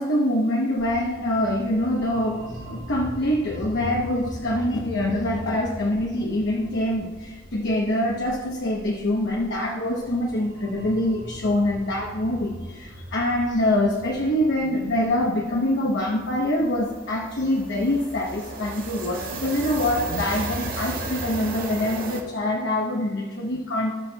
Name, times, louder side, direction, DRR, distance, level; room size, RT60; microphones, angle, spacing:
voice 1, 0.0-23.9, left 1 dB, 60° left, 0 dB, 0.9 m, -25 dB
sound 1, 0.8-20.1, equal, 60° right, 2.2 m, -42 dB
sound 2, 13.8-13.9 14.2-14.4 14.7-22.2, right 2 dB, 45° right, 1.8 m, -35 dB
17.0 x 6.1 x 2.3 m, 1.4 s
head